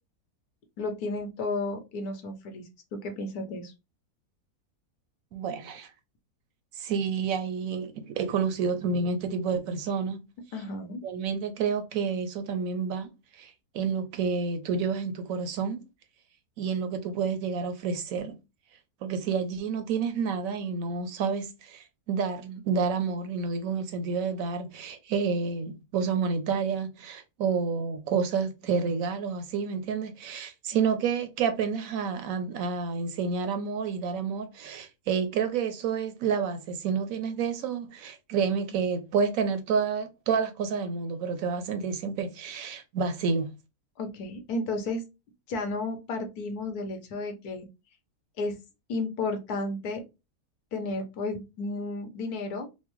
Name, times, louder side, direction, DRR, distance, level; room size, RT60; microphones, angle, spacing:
voice 1, 0.8-3.7 10.5-11.0 44.0-45.0 45.5-47.7 48.4-48.6 48.9-50.0 50.7-52.7, left 2 dB, 85° left, 1.4 m, -33 dB
voice 2, 5.3-5.9 6.8-10.2 11.0-13.1 13.4-15.8 16.6-18.4 19.0-43.5, right 5 dB, 70° right, 0.9 m, -29 dB
4.3 x 2.1 x 3.0 m
omnidirectional pair, 1.6 m